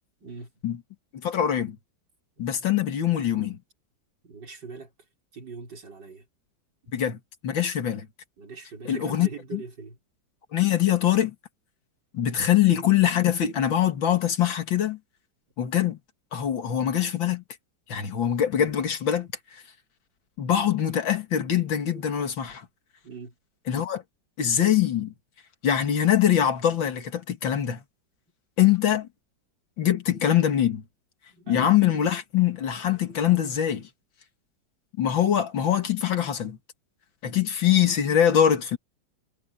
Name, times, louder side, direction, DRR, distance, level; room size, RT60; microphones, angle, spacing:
voice 1, 1.1-1.8 2.4-3.6 6.9-7.2 7.4-8.1 8.8-9.6 10.5-11.3 12.1-15.0 15.6-16.0 16.3-17.4 17.9-19.6 20.4-22.7 23.7-24.0 24.4-25.1 25.6-27.8 28.6-29.1 29.8-30.8 31.5-33.9 35.0-36.6 37.2-38.8, left 10 dB, 90° left, 2.6 m, -23 dB
voice 2, 4.2-4.9 5.3-6.2 8.4-10.0 23.0-23.3 31.3-31.8, right 4 dB, 65° right, 5.4 m, -41 dB
omnidirectional pair, 2.0 m